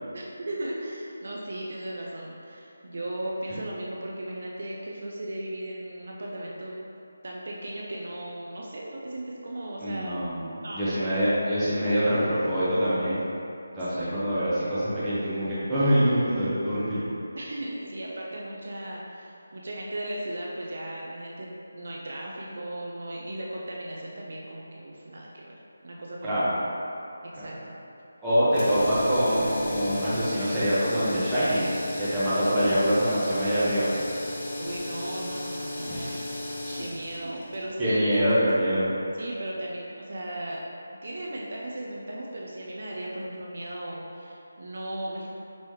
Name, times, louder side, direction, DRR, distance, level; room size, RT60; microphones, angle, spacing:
voice 1, 0.1-6.8 7.2-10.2 10.6-11.2 13.9-14.2 17.4-25.5 25.8-26.4 27.3-27.7 34.6-36.1 36.5-38.3 39.1-40.6 41.0-45.3, right 1 dB, 50° right, -3 dB, 0.5 m, -36 dB
voice 2, 9.8-13.2 13.8-17.0 26.2-26.5 27.4-27.5 28.2-31.7 32.0-33.9 35.8-36.2 36.6-36.8 37.8-38.9, equal, 5° right, -14 dB, 0.9 m, -25 dB
sound 1, 28.5-38.6, left 1 dB, 25° left, 0.6 m, -35 dB
5.3 x 3.0 x 3.2 m, 2.8 s
figure-of-eight pair, 175°, 0 cm